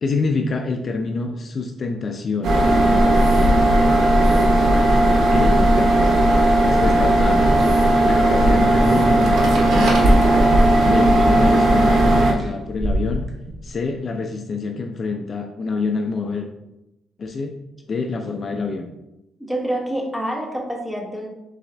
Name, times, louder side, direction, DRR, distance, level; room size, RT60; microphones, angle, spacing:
voice 1, 0.0-3.7 5.2-6.1 6.6-7.4 8.0-10.2 10.8-13.3 13.6-16.5 17.2-17.5 17.9-18.9, left 4 dB, 45° left, 4 dB, 0.4 m, -26 dB
sound 1, 2.4-12.3, right 1 dB, 70° right, 0.9 m, -16 dB
sound 2, 7.5-8.2 9.3-9.4 9.9-10.7 12.3-14.0, right 1 dB, 25° right, 1.0 m, -31 dB
voice 2, 11.0-11.6 19.4-21.3, equal, 5° right, -1 dB, 1.2 m, -28 dB
4.1 x 3.6 x 3.3 m, 0.91 s
cardioid pair, 90°, 0 cm